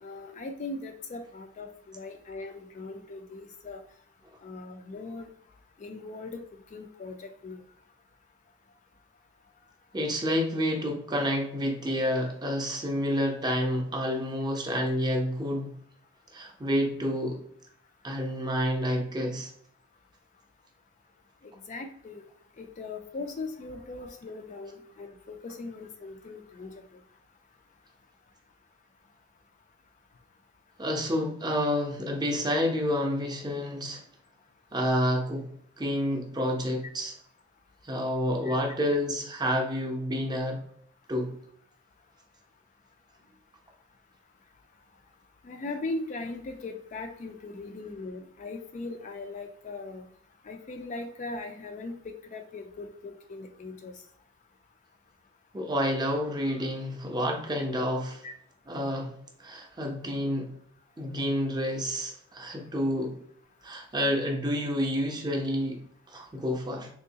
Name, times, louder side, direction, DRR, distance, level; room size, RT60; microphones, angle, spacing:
voice 1, 0.0-3.8 4.4-5.3 5.8-6.4 6.7-7.6 21.7-22.2 22.6-26.8 38.5-38.6 45.4-50.0 50.4-51.9 52.3-53.9 58.2-58.3, left 3 dB, 35° left, 5 dB, 0.3 m, -39 dB
voice 2, 9.9-15.7 16.3-17.4 18.0-19.5 30.8-34.0 34.7-35.5 35.8-37.1 37.8-40.6 41.1-41.3 55.5-58.2 58.7-60.5 61.0-63.2 63.6-65.8 66.1-66.9, equal, 20° right, 2 dB, 0.5 m, -29 dB
3.7 x 2.7 x 2.8 m, 0.64 s
head